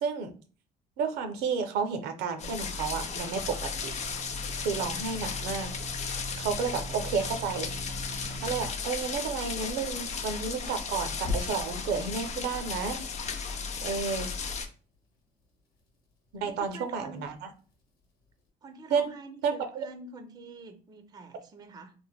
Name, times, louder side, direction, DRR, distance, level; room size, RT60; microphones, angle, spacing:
voice 1, 0.0-0.3 1.0-3.9 4.6-5.7 6.4-7.7 8.4-13.0 13.8-14.3 16.3-17.5 18.9-19.1 19.4-19.9, right 5 dB, 80° right, 8 dB, 0.5 m, -31 dB
sound 1, 2.4-14.7, left 5 dB, 40° left, 0.4 m, -35 dB
sound 2, 2.9-8.7 11.2-12.0, left 1 dB, 80° left, 1.0 m, -40 dB
voice 2, 16.4-17.2 18.6-21.9, right 3 dB, 25° right, 8 dB, 0.4 m, -46 dB
3.2 x 2.1 x 2.2 m, 0.38 s
cardioid pair, 110°, 17 cm